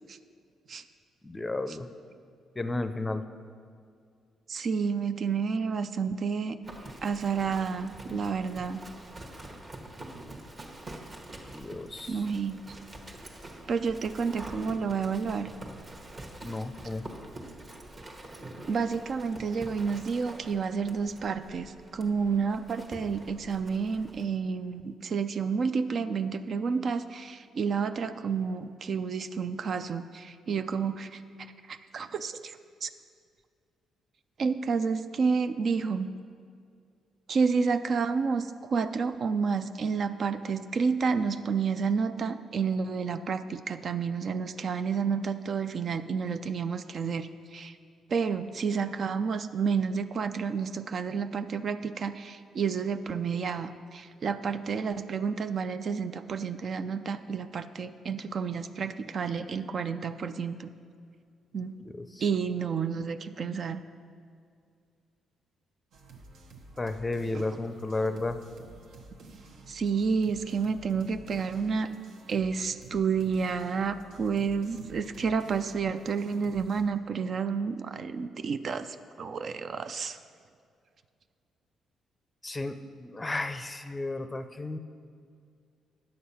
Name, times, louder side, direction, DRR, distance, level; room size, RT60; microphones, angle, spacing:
voice 1, 1.2-1.9 2.6-3.2 11.5-12.3 16.4-17.1 61.8-62.2 66.8-68.4 82.4-84.8, left 2 dB, 20° left, 10 dB, 0.5 m, -33 dB
voice 2, 4.5-6.6 7.0-8.8 12.1-12.6 13.7-15.5 18.7-31.2 31.7-32.9 34.4-36.1 37.3-47.8 48.1-60.7 61.5-61.8 62.2-63.8 67.3-67.4 69.7-71.9 72.3-80.2, right 5 dB, 50° right, 10 dB, 0.4 m, -30 dB
Livestock farm animals working animals, 6.6-24.2, right 1 dB, 35° right, 1.2 m, -46 dB
sound 1, 65.9-76.8, right 2 dB, 75° right, 1.0 m, -51 dB
9.4 x 6.6 x 5.7 m, 2.2 s
cardioid pair, 90°, 0 cm